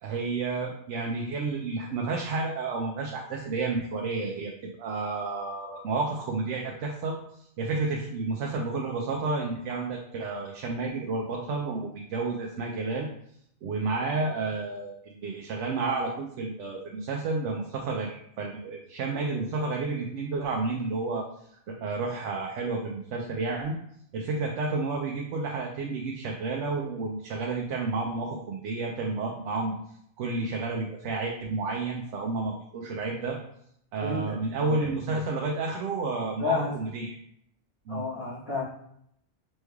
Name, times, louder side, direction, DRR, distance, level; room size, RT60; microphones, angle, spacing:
voice 1, 0.0-4.5 4.8-7.2 7.6-13.1 13.6-21.3 21.7-23.8 24.1-29.7 30.2-33.4 33.9-37.2 37.9-38.1, right 3 dB, 80° right, 0 dB, 0.9 m, -31 dB
voice 2, 34.0-34.7 35.1-35.2 36.4-36.7 37.9-38.6, left 4 dB, 55° left, -14 dB, 1.6 m, -31 dB
5.3 x 3.2 x 2.3 m, 0.72 s
omnidirectional pair, 1.2 m